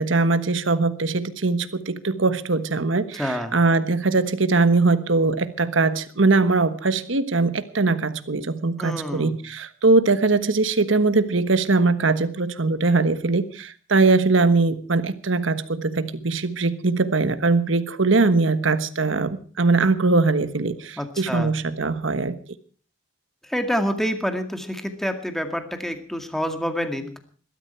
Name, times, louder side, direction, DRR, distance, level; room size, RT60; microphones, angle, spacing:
voice 1, 0.0-22.4, right 3 dB, 75° right, 12 dB, 1.3 m, -21 dB
voice 2, 3.2-3.5 8.8-9.3 21.0-21.5 23.5-27.2, equal, ahead, 6 dB, 2.1 m, -27 dB
21.0 x 13.0 x 4.5 m, 0.41 s
head